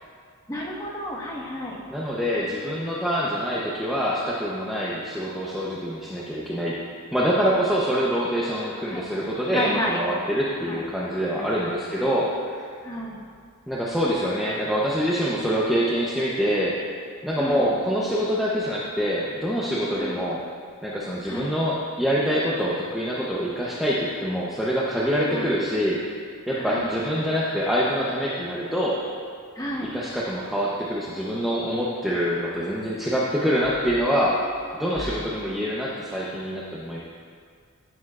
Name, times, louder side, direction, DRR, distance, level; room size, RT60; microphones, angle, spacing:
voice 1, 0.5-1.8 8.4-10.2 10.7-10.8 11.3-12.1 12.8-13.2 17.4-17.7 19.9-20.2 21.3-21.5 25.3-25.5 26.6-26.9 29.5-29.9 35.0-35.2, equal, 15° left, -4 dB, 1.3 m, -32 dB
voice 2, 1.9-6.8 7.1-12.6 13.7-16.8 17.2-20.4 20.8-26.0 26.5-29.0 29.9-34.4 34.7-37.0, equal, ahead, -7 dB, 0.7 m, -25 dB
15.5 x 6.9 x 2.4 m, 2.1 s
head